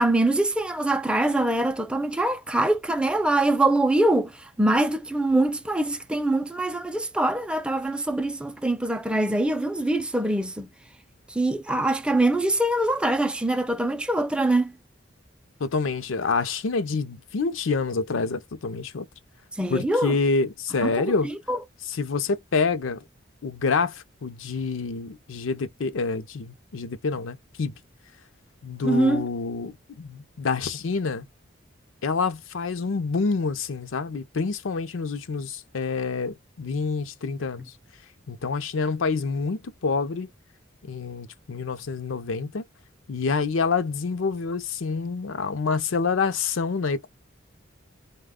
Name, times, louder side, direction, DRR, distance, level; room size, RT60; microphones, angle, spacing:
voice 1, 0.0-10.7 11.3-14.7 19.5-20.2 20.8-21.6 28.8-29.3, right 2 dB, 5° right, 0.4 m, -24 dB
voice 2, 15.6-19.1 19.7-21.3 21.9-23.0 23.4-27.7 28.6-31.3 32.0-37.7 38.3-40.3 40.8-42.6 43.1-47.1, left 4 dB, 80° left, 0.5 m, -27 dB
4.1 x 2.2 x 3.5 m
head